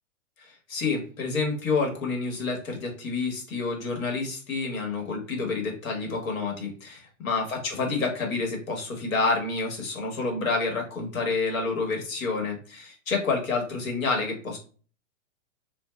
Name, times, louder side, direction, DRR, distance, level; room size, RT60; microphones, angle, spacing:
voice 1, 0.4-14.6, left 4 dB, 80° left, 1 dB, 1.4 m, -28 dB
2.4 x 2.3 x 3.1 m, 0.39 s
hypercardioid pair, 155°, 40 cm